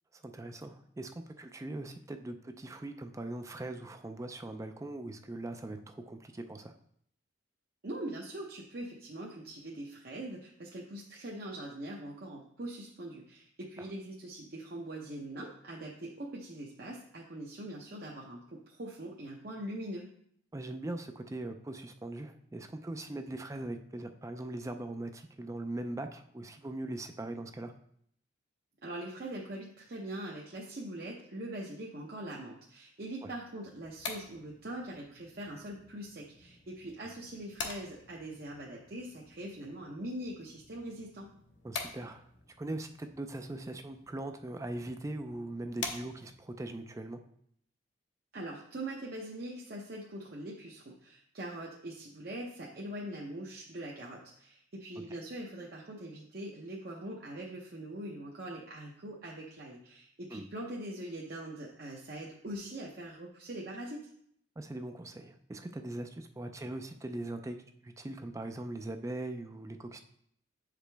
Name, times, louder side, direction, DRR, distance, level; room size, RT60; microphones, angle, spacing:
voice 1, 0.1-6.7 20.5-27.7 33.2-33.3 41.6-42.2 42.6-47.2 60.3-60.5 64.6-67.6 67.8-70.0, right 1 dB, 15° right, 7 dB, 0.4 m, -40 dB
voice 2, 7.8-20.1 28.8-41.3 48.3-64.1, right 1 dB, 50° right, -3 dB, 0.7 m, -42 dB
sound 1, 33.7-46.5, left 4 dB, 65° left, 0.9 m, -47 dB
7.4 x 5.0 x 3.4 m, 0.68 s
head